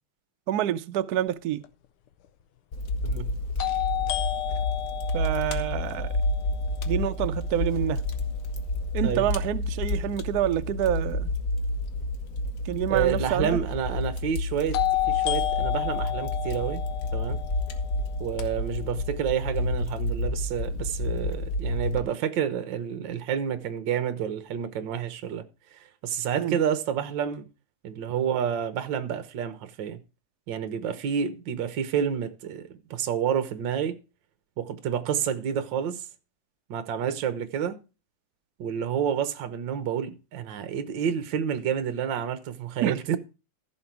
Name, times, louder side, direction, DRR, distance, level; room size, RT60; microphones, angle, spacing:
voice 1, 0.5-1.6 5.1-6.1 6.9-8.0 8.9-11.3 12.7-13.5 26.4-26.6 42.8-43.2, right 11 dB, 85° right, 0.8 m, -27 dB
sound 1, 1.6-1.7 3.6-7.5 14.7-18.8, left 15 dB, 85° left, 1.7 m, -31 dB
Fire, 2.7-22.0, left 2 dB, 45° left, 1.2 m, -30 dB
voice 2, 12.9-14.8 15.1-16.8 17.1-17.4 18.2-25.4 25.7-27.5 27.8-30.0 30.5-34.0 34.6-36.1 36.7-37.8 38.6-43.2, right 8 dB, 60° right, 1.6 m, -29 dB
14.5 x 6.0 x 4.7 m
omnidirectional pair, 2.4 m